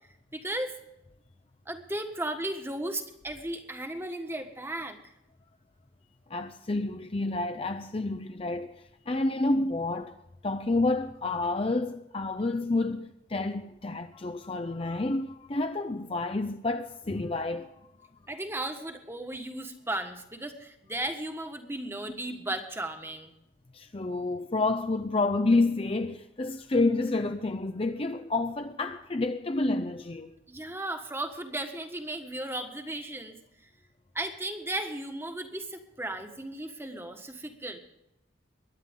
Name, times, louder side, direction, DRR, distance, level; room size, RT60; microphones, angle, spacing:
voice 1, 0.3-0.7 1.7-5.1 18.3-23.3 30.5-33.4 34.1-37.8, right 1 dB, 10° right, 1.5 m, -35 dB
voice 2, 6.3-10.1 10.4-17.7 23.7-30.3, left 2 dB, 30° left, 0.6 m, -29 dB
23.0 x 11.0 x 3.6 m
head